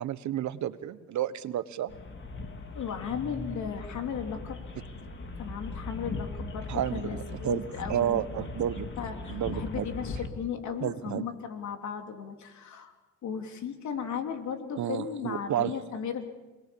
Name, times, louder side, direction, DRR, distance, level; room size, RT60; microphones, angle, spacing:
voice 1, 0.0-1.9 6.7-7.6 7.9-8.9 9.3-9.8 10.8-11.2 14.8-15.7, right 11 dB, 70° right, 14 dB, 1.3 m, -31 dB
sound 1, 1.9-10.3, left 3 dB, 40° left, 3.1 m, -39 dB
voice 2, 2.7-4.6 5.4-8.2 9.0-12.9 13.2-16.2, left 7 dB, 70° left, 5 dB, 3.3 m, -36 dB
28.0 x 20.5 x 7.2 m, 1.2 s
cardioid pair, 90°, 30 cm